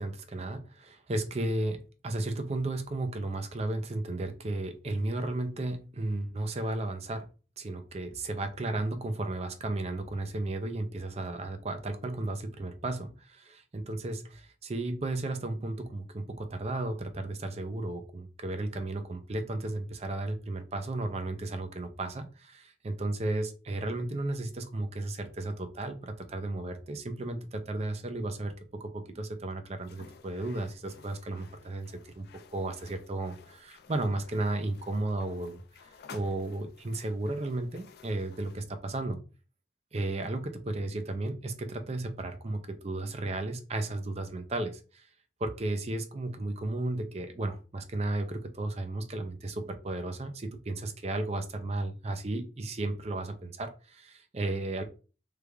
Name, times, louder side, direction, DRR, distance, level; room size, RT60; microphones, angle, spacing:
voice 1, 0.0-7.3 7.6-32.3 32.5-35.6 36.1-39.2 39.9-45.1 45.4-54.8, right 2 dB, 35° right, 7 dB, 0.5 m, -34 dB
sound 1, 29.8-38.7, left 5 dB, 60° left, 0.4 m, -54 dB
3.3 x 2.4 x 3.3 m, 0.34 s
head